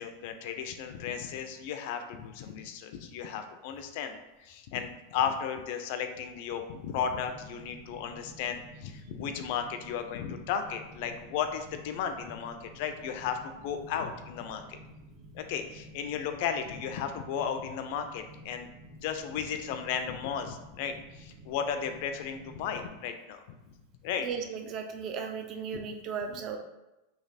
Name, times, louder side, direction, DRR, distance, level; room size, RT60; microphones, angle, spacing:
voice 1, 0.0-14.8 15.3-18.7 19.0-23.6 24.0-24.3 25.7-25.8, left 7 dB, 50° left, 7 dB, 0.4 m, -35 dB
sound 1, 7.2-22.9, equal, 45° right, 1.0 m, -51 dB
voice 2, 24.2-26.6, right 6 dB, 30° right, 5 dB, 0.4 m, -36 dB
3.2 x 2.9 x 4.0 m, 0.96 s
supercardioid pair, 160°, 0 cm